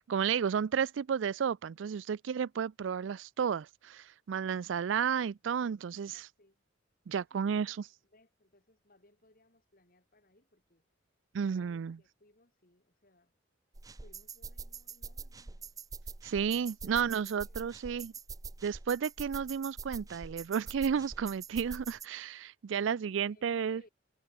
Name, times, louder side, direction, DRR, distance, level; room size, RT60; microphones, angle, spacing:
voice 1, 0.0-6.3 7.1-7.8 11.3-12.0 16.2-18.1 18.6-23.8, right 7 dB, 80° right, 0.4 m, -32 dB
voice 2, 6.1-6.6 7.3-10.8 11.4-13.3 14.0-15.7 16.8-17.6 22.8-23.9, left 1 dB, 50° left, 6.4 m, -65 dB
sound 1, 13.7-22.1, right 4 dB, 20° right, 0.5 m, -45 dB
head